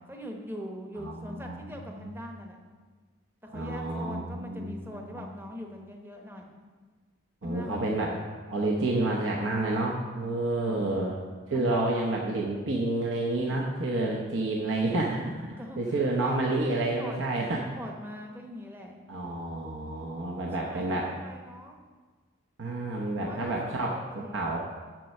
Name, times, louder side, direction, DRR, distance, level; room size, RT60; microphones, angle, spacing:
voice 1, 0.0-2.6 3.4-6.6 7.4-8.2 10.6-10.9 11.5-12.1 13.5-13.6 15.6-16.4 16.7-17.2 17.6-19.0 20.3-21.8 23.2-24.6, equal, 10° right, 2 dB, 0.9 m, -42 dB
voice 2, 1.0-1.9 3.5-5.2 7.4-8.1 8.5-11.2 11.5-17.6 19.1-21.1 22.6-24.6, right 2 dB, 60° right, -2 dB, 0.9 m, -29 dB
7.5 x 6.4 x 6.5 m, 1.4 s
head